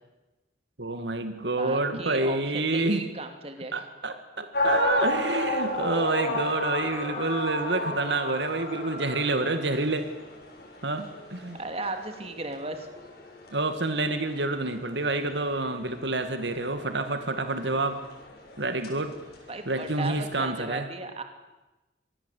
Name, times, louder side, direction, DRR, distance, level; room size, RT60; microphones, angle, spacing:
voice 1, 0.8-3.0 3.7-10.1 10.8-11.6 13.5-18.0 18.6-19.1 19.7-20.9, right 2 dB, 80° right, 8 dB, 2.1 m, -28 dB
voice 2, 1.5-2.4 2.7-3.7 11.6-12.9 19.5-21.2, right 2 dB, 35° right, 6 dB, 2.8 m, -35 dB
sound 1, 4.5-20.4, left 2 dB, 60° left, 7.0 m, -33 dB
26.0 x 20.0 x 8.4 m, 1.1 s
head